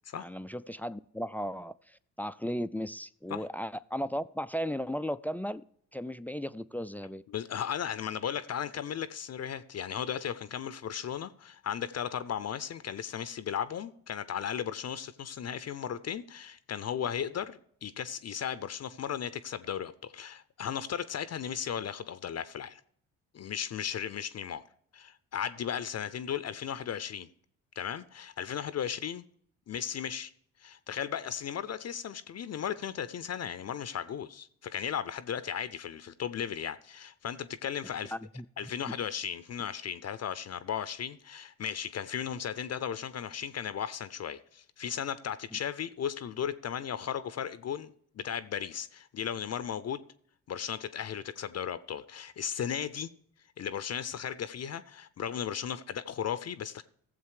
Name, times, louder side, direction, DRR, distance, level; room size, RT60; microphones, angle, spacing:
voice 1, 0.1-5.6 5.9-7.2 38.1-38.5 38.9-39.0 45.5-45.6, equal, 5° left, 0.3 m, -36 dB
voice 2, 7.3-22.8 23.3-24.6 24.9-27.3 27.8-29.2 29.7-30.3 30.6-38.1 38.6-50.0 50.5-53.1 53.6-56.8, left 8 dB, 45° left, 0.6 m, -36 dB
15.0 x 7.3 x 4.8 m
hypercardioid pair, 50°, 37 cm